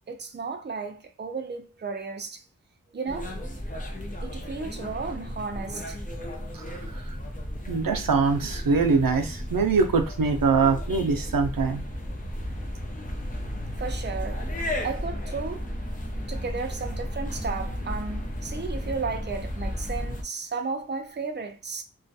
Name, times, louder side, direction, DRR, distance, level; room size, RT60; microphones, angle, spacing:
voice 1, 0.1-2.4 2.9-3.3 4.2-6.0 13.8-14.4 14.8-15.7 16.3-21.8, right 4 dB, 35° right, 0.4 m, -34 dB
sound 1, 3.1-20.2, equal, 25° left, 0.5 m, -34 dB
voice 2, 7.7-11.8, right 4 dB, 85° right, 0.5 m, -23 dB
2.4 x 2.2 x 2.6 m
wide cardioid pair, 50°, 33 cm